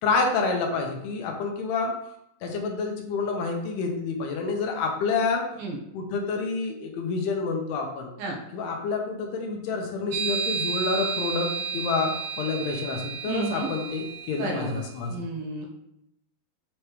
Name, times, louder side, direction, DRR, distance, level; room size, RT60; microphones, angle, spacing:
voice 1, 0.0-1.9 2.4-5.4 5.9-8.1 8.5-15.3, left 4 dB, 85° left, 2 dB, 3.0 m, -28 dB
sound 1, 10.1-14.8, right 6 dB, 85° right, 2.9 m, -32 dB
voice 2, 13.3-13.7 14.4-14.8 15.1-15.7, right 3 dB, 70° right, 0 dB, 2.6 m, -32 dB
8.6 x 3.2 x 4.7 m, 0.78 s
omnidirectional pair, 4.6 m